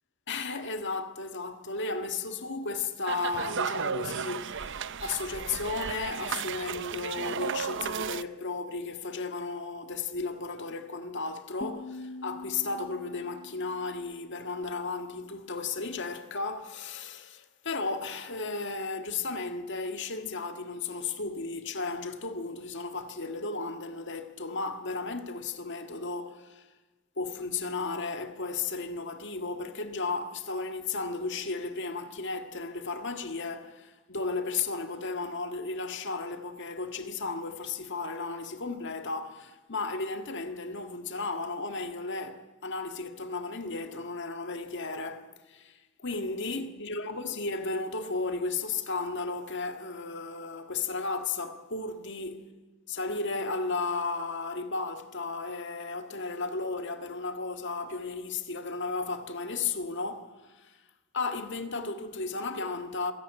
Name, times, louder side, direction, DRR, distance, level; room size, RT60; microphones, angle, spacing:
voice 1, 0.3-26.7 27.2-52.5 52.9-60.8 61.1-63.1, left 3 dB, 60° left, 1.8 m, -34 dB
sound 1, 3.1-8.2, right 6 dB, 60° right, 0.8 m, -34 dB
sound 2, 11.6-14.6, left 2 dB, 35° left, 1.4 m, -44 dB
26.5 x 17.0 x 9.2 m
head